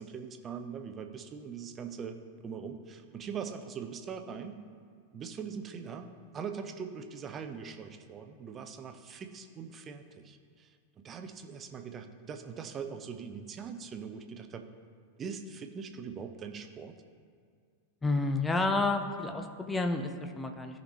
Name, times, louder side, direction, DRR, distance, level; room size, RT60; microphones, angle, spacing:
voice 1, 0.0-2.2 2.4-4.6 5.1-10.8 11.0-14.7 15.2-17.0, right 6 dB, 25° right, 7 dB, 0.7 m, -42 dB
voice 2, 18.0-20.8, left 2 dB, 10° left, 6 dB, 0.7 m, -30 dB
15.0 x 5.2 x 3.1 m, 2.1 s
figure-of-eight pair, 90°, 0 cm